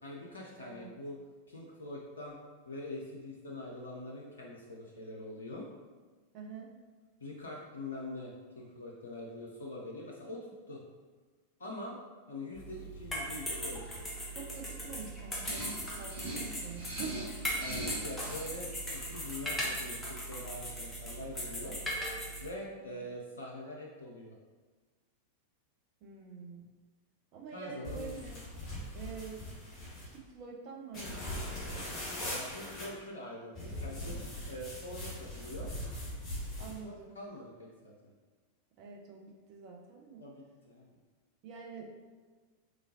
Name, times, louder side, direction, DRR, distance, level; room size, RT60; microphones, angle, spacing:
voice 1, 0.0-1.2 1.5-2.4 2.7-5.7 7.2-10.8 11.6-12.0 12.3-14.2 17.5-21.8 22.4-24.4 27.5-28.8 32.3-34.2 34.5-35.7 36.6-38.1 40.2-40.9, left 1 dB, 70° left, -2 dB, 0.5 m, -44 dB
voice 2, 0.6-0.9 6.3-6.7 14.3-15.7 16.0-17.2 22.8-23.0 26.0-26.6 27.3-28.4 28.9-29.4 30.0-31.8 36.6-37.1 38.8-40.2 41.4-41.9, right 6 dB, 40° right, 0 dB, 0.6 m, -46 dB
sound 1, 12.5-22.5, equal, 10° left, 0.9 m, -39 dB
WC paper, 15.4-18.5, right 1 dB, 70° right, 1.4 m, -41 dB
sound 2, 27.8-30.2 30.9-32.9 33.6-36.8, left 1 dB, 25° left, 1.2 m, -40 dB
3.7 x 3.0 x 2.7 m, 1.4 s
figure-of-eight pair, 90°, 0 cm